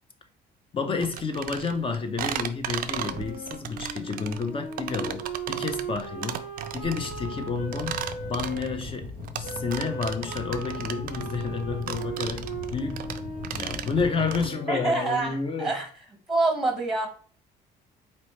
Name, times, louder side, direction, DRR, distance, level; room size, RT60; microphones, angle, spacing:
voice 1, 0.7-8.0 8.3-13.1 13.5-15.8, left 4 dB, 30° left, 0.7 m, -30 dB
sound 1, 1.0-14.5, right 10 dB, 55° right, 0.4 m, -35 dB
Wind instrument woodwind instrument, 2.9-8.8 9.4-15.3, right 3 dB, 85° left, 1.6 m, -38 dB
sound 2, 6.8-14.5, left 4 dB, 70° left, 1.1 m, -39 dB
voice 2, 14.7-15.9 16.3-17.1, right 2 dB, 5° right, 1.0 m, -26 dB
4.1 x 3.0 x 3.1 m
cardioid pair, 110°, 17 cm